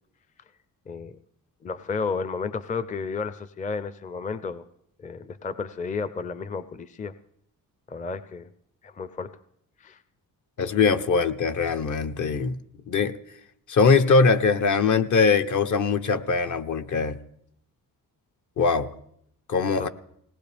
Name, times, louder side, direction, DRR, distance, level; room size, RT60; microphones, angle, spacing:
voice 1, 1.6-4.6 5.0-7.1 7.9-8.5 8.8-9.3 9.8-10.0 19.8-19.9, left 5 dB, 20° left, 13 dB, 0.5 m, -32 dB
voice 2, 10.6-12.6 12.9-13.1 13.7-17.2 18.6-18.9 19.5-19.9, left 4 dB, 55° left, 10 dB, 0.9 m, -21 dB
20.0 x 18.5 x 3.4 m, 0.72 s
cardioid pair, 115°, 36 cm